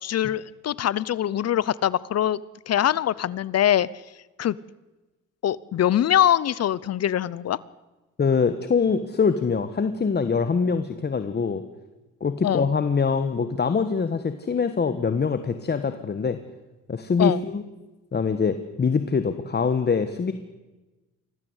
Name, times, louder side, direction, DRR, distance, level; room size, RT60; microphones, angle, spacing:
voice 1, 0.0-3.9 4.4-4.6 5.4-7.6 12.4-12.7 17.2-17.4, left 11 dB, 55° left, 21 dB, 0.8 m, -23 dB
voice 2, 8.2-11.6 12.2-16.4 16.9-17.6 18.1-20.3, left 5 dB, 35° left, 9 dB, 1.5 m, -24 dB
25.0 x 16.5 x 8.2 m, 1.1 s
cardioid pair, 90°, 30 cm